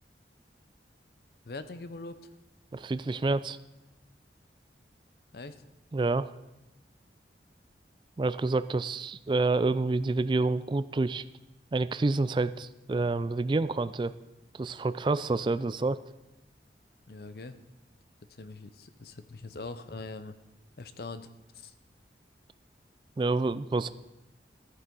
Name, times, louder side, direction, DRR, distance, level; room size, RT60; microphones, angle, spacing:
voice 1, 1.4-2.2 5.3-5.6 17.1-17.6 18.3-20.4 20.8-21.3 21.5-21.7, left 3 dB, 60° left, 12 dB, 0.7 m, -42 dB
voice 2, 2.7-3.6 5.9-6.3 8.2-11.2 11.7-14.1 14.5-16.0 23.2-23.9, right 3 dB, 25° right, 14 dB, 0.3 m, -28 dB
13.5 x 9.7 x 3.9 m, 0.97 s
head